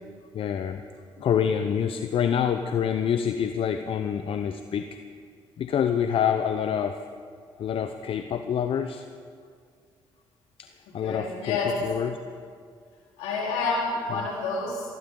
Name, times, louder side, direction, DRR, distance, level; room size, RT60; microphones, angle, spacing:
voice 1, 0.3-0.8 1.2-5.0 5.6-7.0 7.6-9.0 10.6-12.2 14.2-14.3, left 8 dB, 60° left, 8 dB, 0.7 m, -27 dB
voice 2, 11.0-11.7 13.2-14.9, left 4 dB, 85° left, -3 dB, 3.8 m, -29 dB
19.0 x 17.0 x 3.8 m, 2.1 s
supercardioid pair, 55°, 11 cm